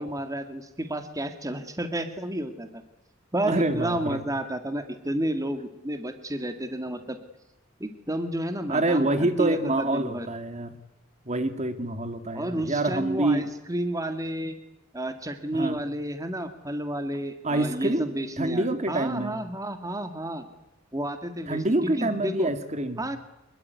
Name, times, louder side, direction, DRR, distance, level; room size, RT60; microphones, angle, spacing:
voice 1, 0.0-2.8 3.3-7.2 7.8-10.3 12.3-14.5 14.9-20.5 20.9-22.5 23.0-23.2, right 1 dB, 15° right, 8 dB, 2.0 m, -31 dB
voice 2, 3.4-4.2 8.7-10.7 11.3-13.5 15.5-15.8 17.4-18.1 18.4-19.4 21.5-23.0, right 2 dB, 35° right, 10 dB, 2.1 m, -26 dB
26.0 x 22.0 x 9.6 m, 0.88 s
head